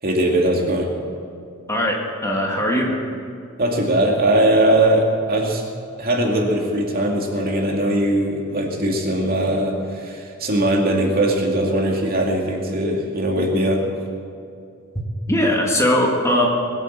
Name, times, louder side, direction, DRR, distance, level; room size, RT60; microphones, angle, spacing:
voice 1, 0.0-0.9 3.6-5.6 6.0-13.8, right 1 dB, 45° right, 0 dB, 2.5 m, -20 dB
voice 2, 2.2-3.0 15.3-16.5, left 1 dB, 15° left, -1 dB, 1.9 m, -19 dB
21.5 x 8.2 x 7.4 m, 2.4 s
head